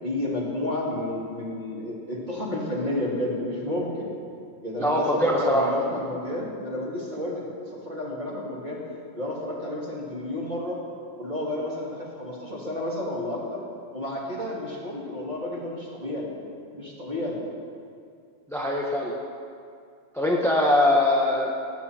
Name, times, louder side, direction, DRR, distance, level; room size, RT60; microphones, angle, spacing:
voice 1, 0.0-4.1 4.6-8.8 9.1-10.8 11.2-13.6 13.9-16.3 16.7-17.4, left 1 dB, 25° right, -5 dB, 2.9 m, -31 dB
voice 2, 4.8-5.7 18.5-19.1 20.1-21.5, left 1 dB, ahead, -3 dB, 0.8 m, -22 dB
19.0 x 9.4 x 4.5 m, 2.3 s
omnidirectional pair, 2.0 m